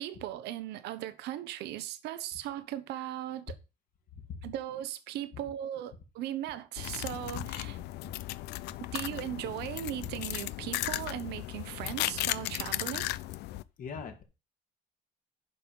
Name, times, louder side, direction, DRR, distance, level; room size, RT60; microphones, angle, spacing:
voice 1, 0.0-3.5 4.4-7.7 8.8-13.1, right 12 dB, 80° right, 1.0 m, -38 dB
voice 2, 4.1-4.5 7.3-8.1 13.8-14.2, left 5 dB, 55° left, 2.4 m, -42 dB
sound 1, 6.8-13.6, left 16 dB, 80° left, 0.5 m, -36 dB
11.0 x 5.6 x 5.3 m
cardioid pair, 110°, 17 cm